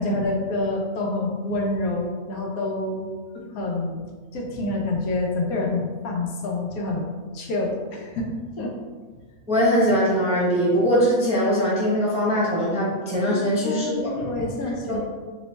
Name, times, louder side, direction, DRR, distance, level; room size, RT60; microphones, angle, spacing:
voice 1, 0.0-3.1 3.5-4.0 4.3-8.7 13.2-15.0, left 2 dB, 80° left, -1 dB, 1.1 m, -27 dB
voice 2, 9.5-14.2 14.9-15.0, equal, 10° right, -8 dB, 0.5 m, -21 dB
3.0 x 2.1 x 3.9 m, 1.4 s
omnidirectional pair, 1.5 m